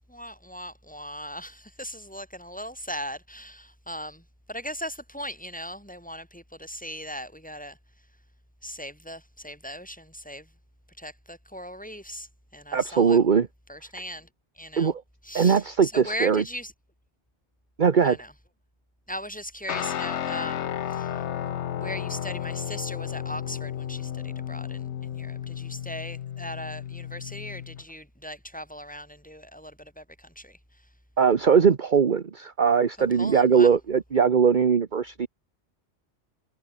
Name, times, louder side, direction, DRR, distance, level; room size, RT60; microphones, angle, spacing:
voice 1, 0.1-7.8 8.6-10.5 11.0-13.2 13.7-14.3 14.5-14.9 15.2-16.7 18.0-18.3 19.1-21.3 21.7-30.9 33.1-33.7, equal, 5° left, 7.2 m, -39 dB
voice 2, 12.7-13.5 14.8-15.0 15.3-16.4 17.8-18.2 31.2-35.3, right 6 dB, 45° right, 1.1 m, -20 dB
Guitar, 19.7-27.8, left 10 dB, 80° left, 1.1 m, -33 dB
omnidirectional pair, 1.2 m